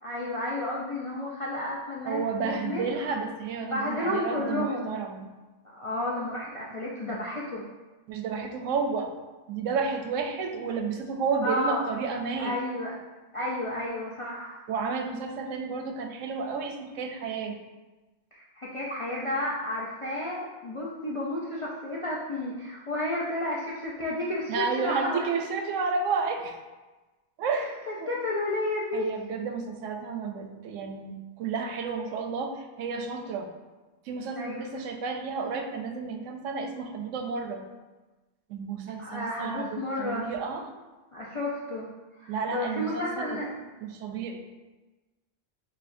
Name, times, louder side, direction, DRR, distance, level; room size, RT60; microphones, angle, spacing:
voice 1, 0.0-2.9 3.6-5.0 5.6-7.6 11.4-11.8 12.3-13.0 13.3-14.6 18.3-25.3 27.5-29.1 34.4-34.6 39.0-40.3 41.1-41.9 42.2-43.5, left 1 dB, 60° left, -6 dB, 0.3 m, -32 dB
voice 2, 2.1-5.3 8.1-9.1 9.5-12.6 14.7-17.6 24.5-26.6 27.4-28.1 28.9-33.5 34.1-37.7 38.5-40.7 42.3-43.4 43.8-44.4, right 5 dB, 90° right, 5 dB, 0.9 m, -31 dB
6.7 x 2.3 x 2.6 m, 1.2 s
omnidirectional pair, 1.3 m